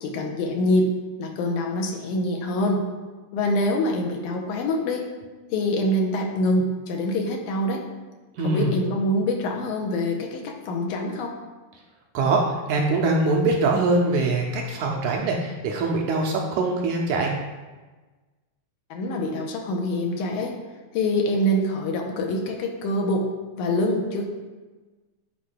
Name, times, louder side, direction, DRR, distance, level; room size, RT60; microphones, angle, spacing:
voice 1, 0.0-0.9 1.2-2.8 3.3-5.1 5.5-7.8 8.4-11.3 18.9-20.5 20.9-23.3 23.5-24.2, left 1 dB, 80° left, 1 dB, 2.1 m, -25 dB
voice 2, 8.4-8.8 12.1-17.3, right 3 dB, 80° right, 0 dB, 1.8 m, -23 dB
10.0 x 4.5 x 2.2 m, 1.3 s
omnidirectional pair, 3.7 m